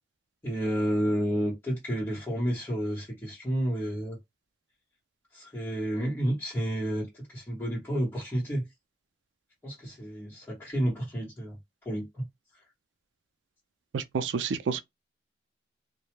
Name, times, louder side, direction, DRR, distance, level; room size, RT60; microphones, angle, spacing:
voice 1, 0.4-4.2 5.3-8.6 9.6-11.6 11.8-12.3, equal, 15° left, 1.0 m, -30 dB
voice 2, 13.9-14.8, right 5 dB, 85° right, 0.4 m, -29 dB
2.2 x 2.1 x 3.0 m
head